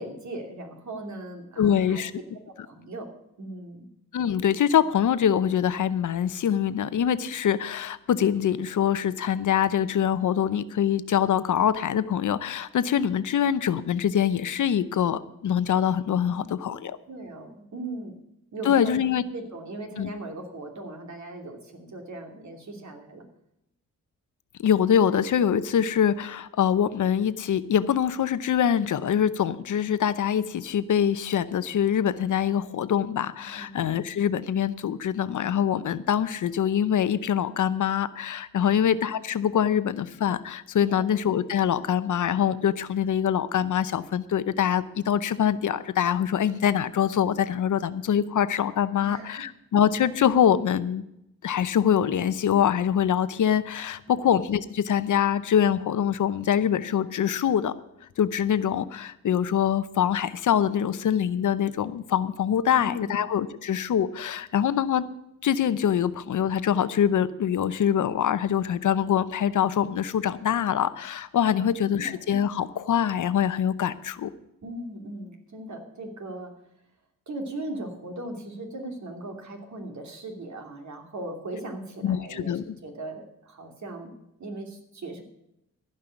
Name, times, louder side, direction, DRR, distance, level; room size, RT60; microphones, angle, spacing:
voice 1, 0.0-2.0 2.5-3.1 3.4-3.9 16.3-18.2 18.5-19.0 19.3-23.3 33.6-33.7 38.6-38.8 40.9-41.2 48.9-49.3 54.2-54.3 62.6-63.3 71.5-72.2 74.6-76.5 77.3-84.1 84.4-85.2, right 2 dB, 55° right, 4 dB, 2.9 m, -39 dB
voice 2, 1.6-2.1 4.1-17.0 18.7-19.2 20.0-20.1 24.6-51.0 51.4-57.7 58.2-65.0 65.4-74.3 82.0-82.6, left 9 dB, 60° left, 14 dB, 0.7 m, -24 dB
15.0 x 5.6 x 9.0 m, 0.82 s
cardioid pair, 85°, 34 cm